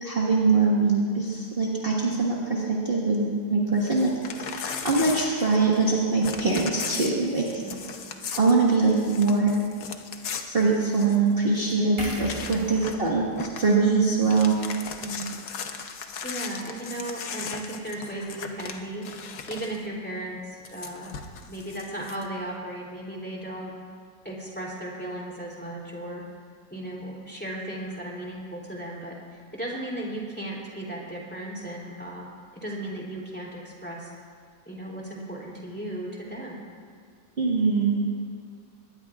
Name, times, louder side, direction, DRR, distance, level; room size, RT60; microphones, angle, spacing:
voice 1, 0.0-4.1 4.4-7.5 8.4-9.5 10.5-14.6 37.4-38.0, right 4 dB, 35° right, -5 dB, 1.7 m, -23 dB
Crumpling crinkling / Tearing, 3.8-5.9 6.2-11.3 11.7-11.8 12.0-13.1 13.4-13.7 14.1-19.8 20.6-22.2, left 6 dB, 60° left, 1.2 m, -37 dB
sound 1, 12.0-15.3 15.7-15.9, equal, 15° right, 2.5 m, -40 dB
voice 2, 15.0-15.4 16.2-21.1 21.5-23.7 24.2-26.2 26.7-29.2 29.5-34.1 34.7-36.6, right 1 dB, 5° left, -3 dB, 2.9 m, -36 dB
22.0 x 19.0 x 2.4 m, 2.2 s
omnidirectional pair, 1.8 m